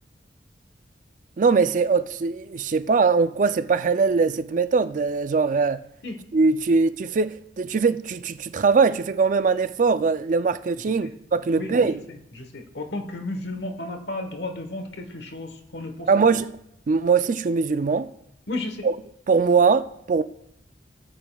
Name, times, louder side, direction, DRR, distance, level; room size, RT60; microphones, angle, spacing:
voice 1, 1.4-5.8 6.3-12.0 16.1-16.5 16.9-18.1 18.8-18.9 19.3-20.2, right 4 dB, 45° right, 0.4 m, -21 dB
voice 2, 11.5-16.1 18.5-18.8, left 2 dB, 70° left, 1.2 m, -33 dB
17.5 x 7.7 x 2.3 m
head